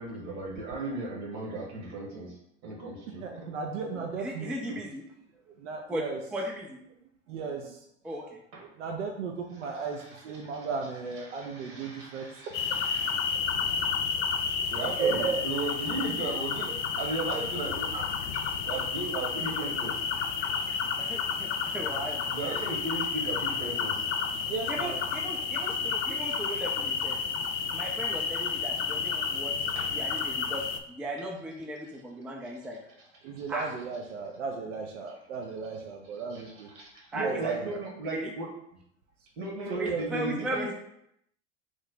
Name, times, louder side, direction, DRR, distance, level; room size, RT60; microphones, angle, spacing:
voice 1, 0.0-2.4 2.6-3.2 3.9-4.0 4.7-4.8 8.5-8.7 10.4-10.5 11.3-14.0 14.7-20.0 22.2-24.0 29.7-29.9 33.2-33.4 36.3-36.4 36.7-38.5 39.4-40.7, right 2 dB, 55° right, -2 dB, 1.3 m, -36 dB
voice 2, 3.2-4.5 5.5-6.2 7.0-8.2 8.8-12.5 14.6-14.7 15.0-15.4 20.6-20.7 24.5-25.0 33.2-36.7 37.2-37.8 39.7-40.3, right 5 dB, 75° right, 2 dB, 0.5 m, -35 dB
voice 3, 4.2-5.0 5.9-6.0 6.3-6.8 8.0-8.4 21.0-22.2 24.7-27.2 27.7-32.8 33.5-33.7 37.1-37.5 38.1-38.3 39.8-40.7, right 1 dB, 5° right, 0 dB, 0.3 m, -37 dB
sound 1, 12.5-30.8, left 6 dB, 70° left, 0.5 m, -31 dB
3.1 x 2.1 x 3.9 m, 0.75 s
hypercardioid pair, 80°, 37 cm